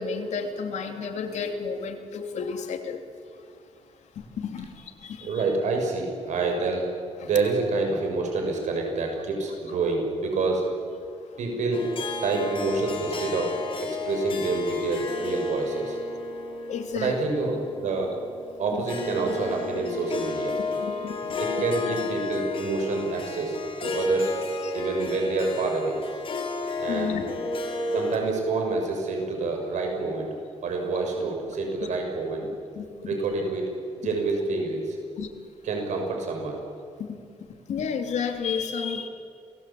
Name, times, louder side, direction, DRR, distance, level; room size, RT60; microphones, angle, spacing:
voice 1, 0.0-3.0 3.3-3.4 4.1-5.4 7.2-7.3 11.2-11.3 16.7-17.3 18.7-18.8 20.8-21.4 23.9-24.1 24.6-24.8 26.9-27.3 27.6-28.0 32.7-32.9 35.2-35.3 37.0-37.2 37.7-39.1, left 6 dB, 65° left, 5 dB, 3.1 m, -32 dB
voice 2, 5.2-6.9 7.2-10.7 11.4-11.9 12.2-16.0 16.9-18.1 18.6-20.6 21.4-24.4 24.7-26.0 26.8-27.2 27.9-30.3 30.6-32.5 33.0-33.7 34.0-35.0 35.6-36.6, right 3 dB, 75° right, 2 dB, 6.4 m, -27 dB
Harp, 11.7-28.2, left 2 dB, 45° left, 3.3 m, -32 dB
28.5 x 20.5 x 8.7 m, 2.4 s
wide cardioid pair, 175°, 13 cm